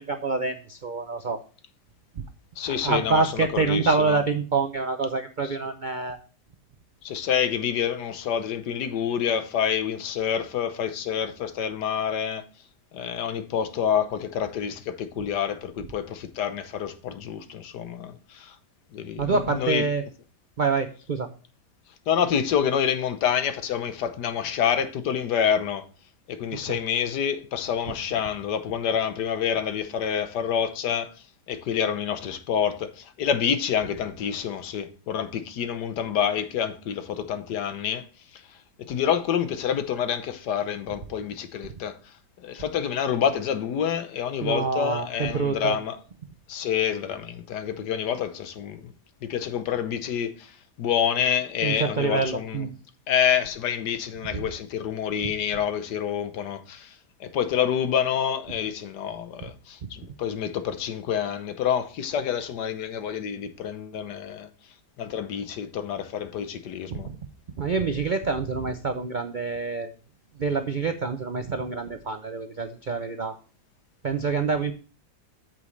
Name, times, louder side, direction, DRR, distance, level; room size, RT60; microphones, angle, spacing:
voice 1, 0.0-1.4 2.6-6.2 19.2-20.0 20.6-21.3 26.7-26.8 44.4-45.8 51.6-52.7 54.3-54.4 67.0-67.2 67.6-69.9 70.4-73.4 74.0-74.7, right 4 dB, 60° right, 0.5 m, -26 dB
voice 2, 2.6-4.2 5.4-5.6 7.0-12.4 12.9-18.6 18.9-19.9 22.1-25.9 26.3-31.1 31.5-38.1 38.8-42.0 42.4-46.0 46.5-48.9 49.2-52.7 53.1-56.9 57.2-64.5 65.0-67.1, left 8 dB, 85° left, 1.5 m, -27 dB
8.4 x 7.4 x 3.2 m
omnidirectional pair, 1.8 m